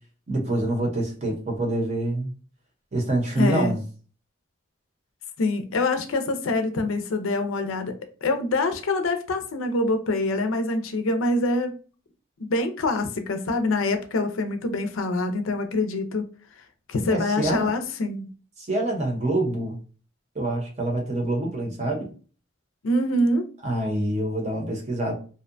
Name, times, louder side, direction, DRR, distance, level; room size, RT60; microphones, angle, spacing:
voice 1, 0.3-2.3 2.9-3.8 17.1-17.7 18.6-19.8 20.3-22.1 23.6-25.1, right 1 dB, 35° right, 0 dB, 0.7 m, -26 dB
voice 2, 3.4-3.8 5.4-11.7 12.5-16.3 16.9-18.3 22.8-23.4, left 2 dB, 80° left, 7 dB, 0.5 m, -25 dB
2.6 x 2.1 x 2.5 m, 0.38 s
head